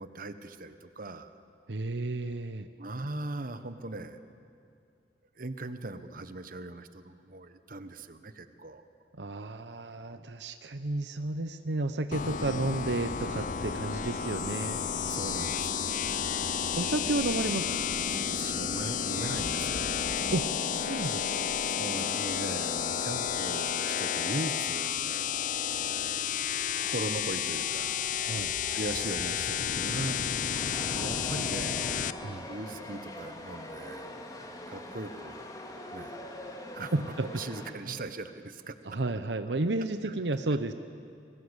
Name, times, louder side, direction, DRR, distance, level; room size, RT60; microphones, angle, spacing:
voice 1, 0.0-1.3 2.8-4.2 5.4-8.8 12.4-12.8 15.1-16.2 18.2-20.1 21.8-25.0 25.7-26.3 26.8-28.0 28.7-30.2 30.9-31.9 32.5-34.1 34.7-35.5 35.9-36.2 36.7-39.0 40.0-40.1, right 2 dB, 55° right, 10 dB, 1.2 m, -39 dB
voice 2, 1.7-2.7 9.2-14.8 16.8-17.8 20.3-21.5 28.2-28.5 32.2-32.5 36.7-37.4 38.8-40.7, right 2 dB, 80° right, 10 dB, 0.9 m, -32 dB
sound 1, 12.1-32.1, left 8 dB, 50° left, 0.7 m, -31 dB
sound 2, 15.6-22.2 25.9-29.3, equal, 25° right, 2.4 m, -52 dB
Chatter / Subway metro underground, 30.5-37.7, left 1 dB, 20° left, 2.5 m, -43 dB
30.0 x 21.5 x 8.2 m, 2.5 s
head